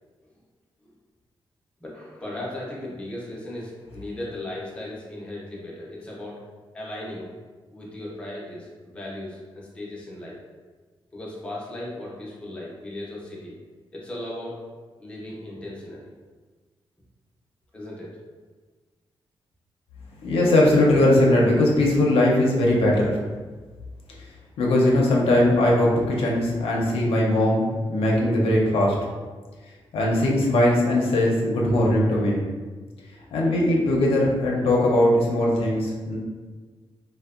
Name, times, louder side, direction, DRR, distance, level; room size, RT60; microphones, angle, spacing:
voice 1, 1.8-6.4 6.7-7.3 7.7-10.4 11.1-13.5 13.9-14.6 15.0-16.1 17.7-18.1, left 1 dB, 10° left, -5 dB, 0.5 m, -36 dB
voice 2, 20.2-23.2 24.6-29.0 29.9-32.4 33.3-36.2, left 1 dB, 80° left, -2 dB, 0.5 m, -20 dB
2.7 x 2.0 x 2.4 m, 1.4 s
wide cardioid pair, 160°, 10 cm